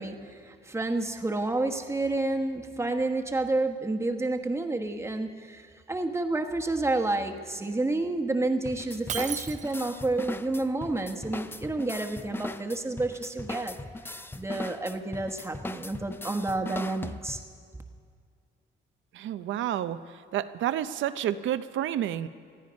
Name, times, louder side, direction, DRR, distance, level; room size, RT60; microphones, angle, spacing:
voice 1, 0.0-13.8 14.4-17.4, right 2 dB, 15° right, 4 dB, 1.2 m, -30 dB
sound 1, 8.6-17.6, left 2 dB, 10° left, 0.5 m, -39 dB
Shatter, 9.1-10.1, right 8 dB, 40° right, 0.4 m, -35 dB
voice 2, 19.1-20.0 20.3-22.3, right 11 dB, 75° right, 12 dB, 0.6 m, -29 dB
20.0 x 13.5 x 5.3 m, 2.1 s
cardioid pair, 90°, 20 cm